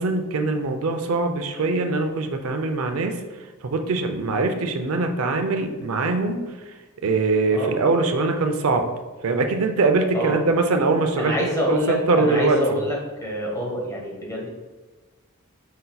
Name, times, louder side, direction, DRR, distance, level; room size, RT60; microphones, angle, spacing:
voice 1, 0.0-3.2 3.6-6.4 7.0-8.8 9.2-11.3 11.7-12.8, right 3 dB, 70° right, 5 dB, 0.5 m, -22 dB
voice 2, 11.2-14.5, equal, 15° left, -2 dB, 1.0 m, -26 dB
5.3 x 4.0 x 2.3 m, 1.3 s
head